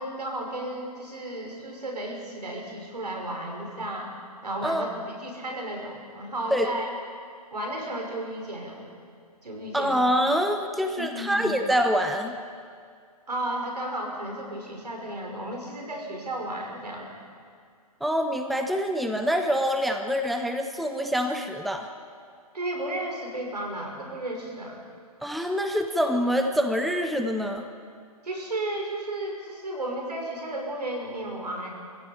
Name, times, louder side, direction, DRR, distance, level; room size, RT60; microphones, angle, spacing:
voice 1, 0.0-4.1 4.4-6.9 7.5-8.8 9.4-10.0 11.0-11.5 13.3-17.1 22.5-24.8 28.2-31.7, right 1 dB, 90° right, 1 dB, 6.1 m, -33 dB
voice 2, 9.7-12.4 18.0-21.9 25.2-27.7, equal, ahead, 5 dB, 0.5 m, -25 dB
22.5 x 15.5 x 8.8 m, 2.2 s
hypercardioid pair, 150°, 20 cm